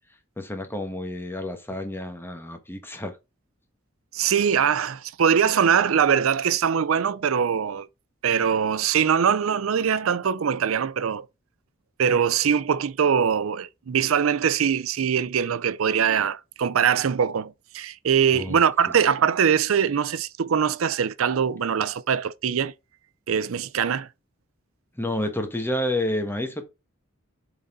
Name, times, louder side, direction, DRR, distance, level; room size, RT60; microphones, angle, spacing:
voice 1, 0.4-3.2 18.3-18.6 25.0-26.6, left 1 dB, 10° left, 1.2 m, -29 dB
voice 2, 4.1-7.9 8.2-11.3 12.0-22.7 23.3-24.1, right 7 dB, 90° right, 0.5 m, -22 dB
7.4 x 4.0 x 3.7 m
head